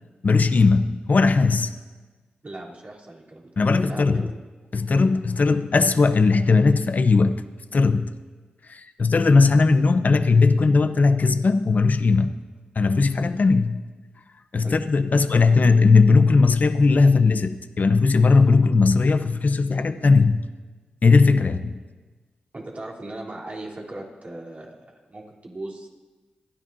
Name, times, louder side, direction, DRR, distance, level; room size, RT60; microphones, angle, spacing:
voice 1, 0.2-1.7 3.6-4.3 4.7-7.4 7.7-8.1 8.7-12.3 12.8-13.8 14.5-20.5 21.0-21.8, left 4 dB, 55° left, 9 dB, 0.8 m, -18 dB
voice 2, 2.4-4.3 14.6-14.7 15.1-15.2 22.5-25.9, right 2 dB, 45° right, -3 dB, 3.5 m, -38 dB
27.5 x 10.5 x 2.7 m, 1.3 s
cardioid pair, 55°, 3 cm